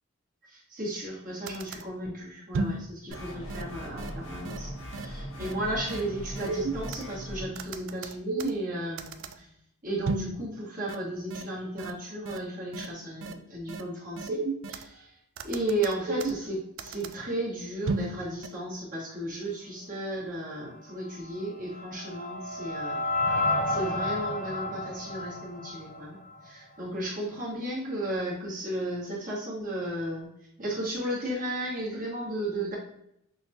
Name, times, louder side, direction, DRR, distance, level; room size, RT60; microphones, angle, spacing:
voice 1, 0.5-9.5 9.8-14.4 14.7-15.2 15.4-26.2 26.4-30.3 30.6-32.8, right 1 dB, 40° right, -6 dB, 1.5 m, -34 dB
sound 1, 1.1-1.2 1.5-1.8 2.5-2.8 3.1-3.2 3.5-3.6 4.0-4.1 4.4-4.6 4.9-5.1 5.4-5.5 5.9-6.0 6.4-7.0 7.6-8.7 9.0-9.3 10.1-10.3 10.9-11.0 11.3-11.4 11.8-11.9 12.3-12.4 12.7-12.9 13.2-13.3 13.7-13.8 14.2-14.8 15.4-16.5 16.8-17.1 17.9-18.1 18.4-18.5, right 3 dB, 65° right, 0.4 m, -32 dB
sound 2, 3.1-7.5, equal, 80° left, 1.5 m, -39 dB
sound 3, 21.3-26.5, left 2 dB, 35° left, 0.4 m, -31 dB
6.2 x 2.3 x 2.7 m, 0.77 s
head